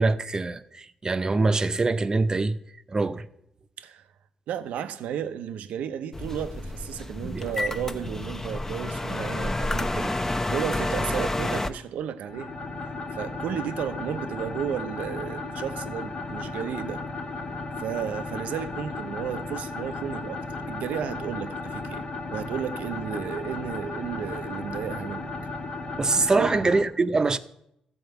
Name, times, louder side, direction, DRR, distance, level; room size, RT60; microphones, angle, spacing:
voice 1, 0.0-2.6 2.9-3.3 7.2-7.5 26.0-27.4, right 3 dB, 30° right, 0.7 m, -24 dB
voice 2, 4.5-12.5 13.1-17.0 17.8-25.3 26.4-26.7, right 9 dB, 90° right, 0.6 m, -33 dB
sound 1, 6.1-11.7, left 2 dB, 15° left, 0.7 m, -29 dB
sound 2, 12.2-26.8, left 3 dB, 60° left, 1.4 m, -35 dB
13.5 x 4.5 x 7.9 m
cardioid pair, 80°, 2 cm